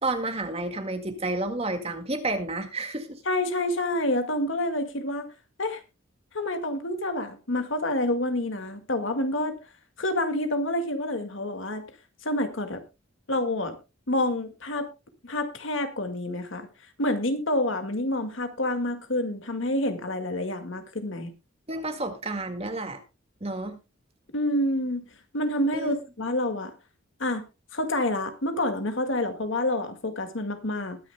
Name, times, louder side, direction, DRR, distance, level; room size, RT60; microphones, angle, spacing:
voice 1, 0.0-3.2 21.7-23.0 23.4-23.8 25.7-26.0, right 2 dB, 30° right, 6 dB, 1.9 m, -30 dB
voice 2, 3.3-5.3 5.6-5.8 6.3-9.5 10.0-11.8 12.2-12.8 13.3-13.8 14.1-14.9 15.2-16.7 17.0-21.3 24.3-25.0 25.3-26.7 27.2-27.4 27.7-31.0, left 1 dB, 65° left, 7 dB, 1.9 m, -28 dB
21.0 x 10.0 x 2.2 m, 0.28 s
head